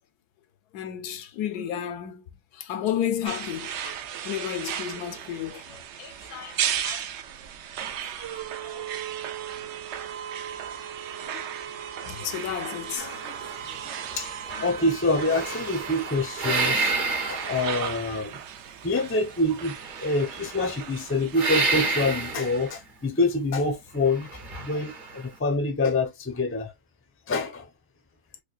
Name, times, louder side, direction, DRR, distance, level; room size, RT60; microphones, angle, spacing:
voice 1, 0.7-2.2 2.5-4.0 4.2-7.1 8.0-8.3 8.6-9.0 11.3-11.4 12.0-13.4 14.5-14.9 17.2-17.4 26.6-26.7, left 10 dB, 75° left, 1.1 m, -33 dB
sound 1, 3.3-22.8, right 9 dB, 75° right, 0.6 m, -36 dB
sound 2, 13.0-14.2 14.5-18.2 19.8-20.9 21.3-22.7 24.1-25.2, right 3 dB, 40° right, 0.9 m, -30 dB
voice 2, 13.9-14.3 14.6-18.4 18.8-19.8 20.0-24.3 24.6-26.7 27.3-27.7, left 2 dB, 15° left, 0.4 m, -26 dB
4.8 x 2.3 x 2.3 m
omnidirectional pair, 1.7 m